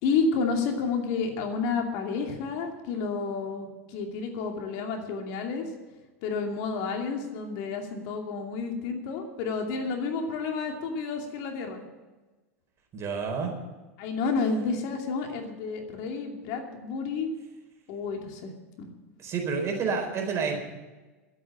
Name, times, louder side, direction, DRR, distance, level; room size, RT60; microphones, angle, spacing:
voice 1, 0.0-5.6 6.2-11.9 14.0-17.3 17.9-18.5 18.8-18.9, left 4 dB, 55° left, 3 dB, 2.6 m, -30 dB
voice 2, 12.9-13.5 19.2-20.6, right 5 dB, 35° right, 2 dB, 4.4 m, -29 dB
13.0 x 8.6 x 9.1 m, 1.2 s
hypercardioid pair, 100°, 8 cm